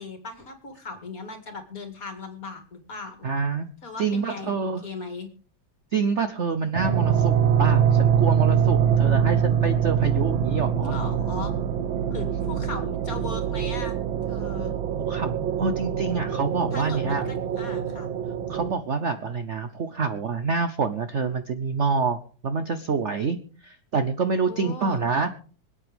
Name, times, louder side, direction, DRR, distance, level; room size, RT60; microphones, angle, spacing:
voice 1, 0.0-3.3 3.8-4.6 4.8-5.3 10.8-11.5 12.1-14.0 14.3-14.8 16.7-18.1 24.5-25.1, left 3 dB, 45° left, 6 dB, 2.6 m, -38 dB
voice 2, 3.2-3.7 4.0-4.9 5.9-11.0 15.1-17.3 18.5-22.2 22.4-23.4 23.6-25.3, right 4 dB, 55° right, 9 dB, 0.8 m, -27 dB
sound 1, 6.7-18.7, right 8 dB, 80° right, 1.7 m, -24 dB
25.5 x 8.7 x 3.6 m, 0.41 s
omnidirectional pair, 2.1 m